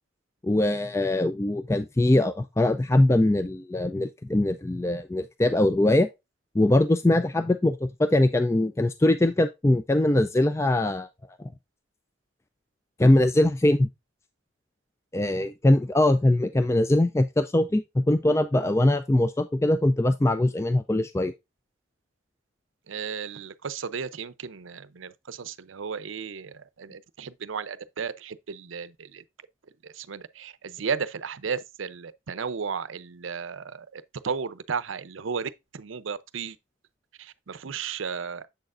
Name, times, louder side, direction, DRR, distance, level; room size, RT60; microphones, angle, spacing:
voice 1, 0.4-6.1 6.5-11.1 11.4-11.5 13.0-13.9 15.1-21.3, left 1 dB, 15° left, 0.3 m, -22 dB
voice 2, 22.9-29.2 29.8-36.6 37.2-38.5, right 6 dB, 85° right, 0.6 m, -34 dB
7.9 x 6.5 x 2.5 m
head